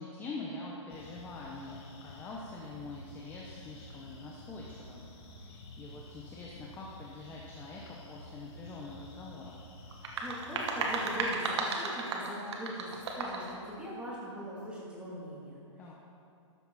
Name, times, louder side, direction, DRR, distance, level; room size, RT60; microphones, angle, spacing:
voice 1, 0.0-5.0 5.3-9.6 15.8-15.9, left 3 dB, 15° left, -3 dB, 1.1 m, -44 dB
sound 1, 0.9-11.3, left 1 dB, 50° left, 2.8 m, -51 dB
sound 2, 9.9-13.5, right 3 dB, 60° right, 2.0 m, -34 dB
voice 2, 10.2-15.6, equal, 5° right, -7 dB, 3.1 m, -41 dB
14.0 x 11.0 x 4.3 m, 2.5 s
hypercardioid pair, 150°, 16 cm